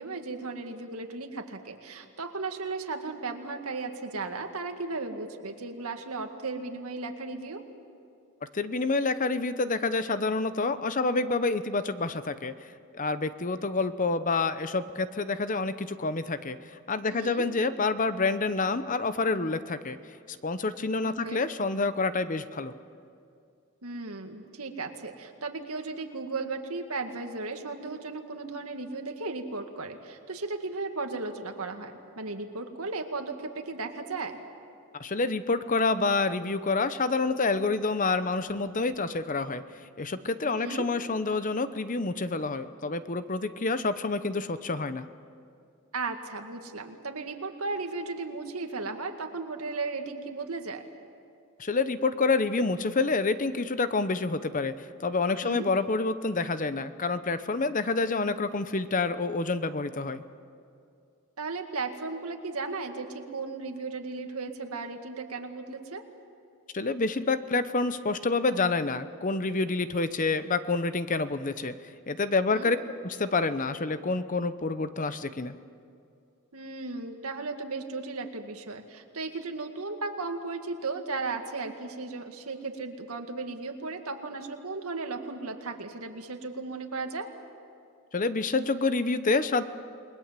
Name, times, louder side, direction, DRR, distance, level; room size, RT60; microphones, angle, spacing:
voice 1, 0.0-7.6 17.1-17.5 21.0-21.4 23.8-34.4 40.5-40.9 45.9-50.8 55.4-55.7 61.4-66.0 72.5-72.7 76.5-87.3, right 3 dB, 75° right, 5 dB, 2.0 m, -35 dB
voice 2, 8.5-12.5 12.9-20.0 20.3-22.7 35.0-39.6 40.0-45.1 51.6-60.2 66.7-72.8 73.0-75.6 88.1-89.6, left 3 dB, 35° left, 12 dB, 0.8 m, -28 dB
29.0 x 20.5 x 7.5 m, 2.4 s
head